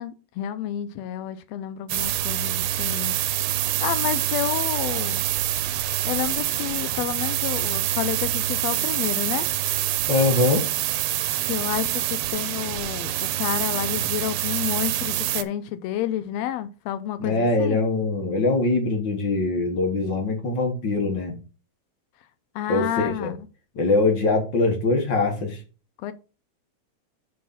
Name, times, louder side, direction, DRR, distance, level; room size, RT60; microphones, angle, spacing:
voice 1, 0.0-3.1 3.8-5.2 6.0-9.5 11.4-17.8 22.5-23.4 26.0-26.1, left 11 dB, 75° left, 1.6 m, -30 dB
sound 1, 1.9-15.4, right 13 dB, 90° right, 2.0 m, -26 dB
voice 2, 10.1-10.7 17.2-21.4 22.7-23.3 23.8-25.6, left 3 dB, 45° left, 1.7 m, -22 dB
6.3 x 4.8 x 5.6 m
omnidirectional pair, 3.4 m